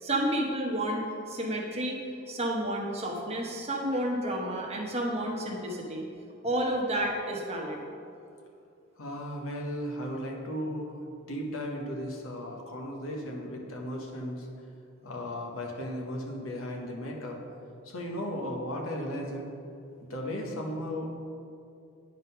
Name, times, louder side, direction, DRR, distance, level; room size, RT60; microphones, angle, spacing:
voice 1, 0.0-2.0 2.3-6.0 6.4-7.8, right 1 dB, 30° right, -1 dB, 1.0 m, -30 dB
voice 2, 9.0-14.5 15.0-17.4 17.8-19.5 20.0-21.2, equal, 80° left, 0 dB, 1.1 m, -36 dB
9.5 x 3.8 x 5.6 m, 2.5 s
head